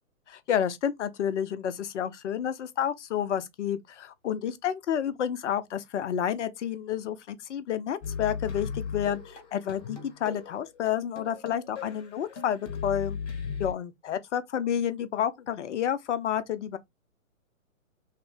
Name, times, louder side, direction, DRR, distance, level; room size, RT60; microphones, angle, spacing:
voice 1, 0.3-13.2 13.6-16.8, left 9 dB, 60° left, 0.5 m, -30 dB
sound 1, 8.0-13.7, left 6 dB, 30° left, 0.8 m, -37 dB
3.2 x 2.0 x 3.0 m
figure-of-eight pair, 120°, 42 cm